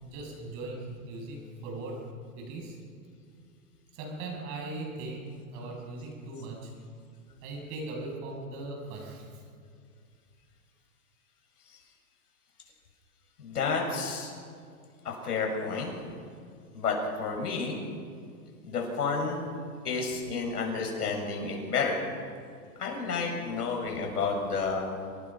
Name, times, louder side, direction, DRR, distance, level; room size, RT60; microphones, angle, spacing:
voice 1, 0.0-2.0 2.4-2.8 3.9-6.7 7.4-9.4, right 2 dB, 40° right, 1 dB, 7.6 m, -39 dB
voice 2, 13.4-14.3 15.0-15.9 16.7-17.8 18.6-19.4 19.8-22.0 22.8-24.8, left 4 dB, 90° left, 1 dB, 7.3 m, -30 dB
27.0 x 20.0 x 5.8 m, 2.2 s
hypercardioid pair, 140°, 45 cm